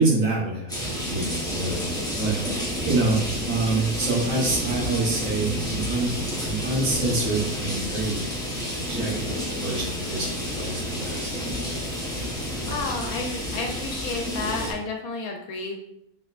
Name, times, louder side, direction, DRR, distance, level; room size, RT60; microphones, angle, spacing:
voice 1, 0.0-2.3 2.9-3.2 3.4-6.1 6.4-8.2 8.7-11.3, right 3 dB, 65° right, -3 dB, 1.5 m, -26 dB
sound 1, 0.7-14.7, equal, 5° left, 0.9 m, -30 dB
sound 2, 0.8-2.1 2.7-3.2 3.9-4.5 5.1-13.0, left 5 dB, 70° left, 0.9 m, -41 dB
voice 2, 12.7-15.8, left 4 dB, 90° left, 3 dB, 1.1 m, -31 dB
4.1 x 3.7 x 2.5 m, 0.77 s
omnidirectional pair, 1.5 m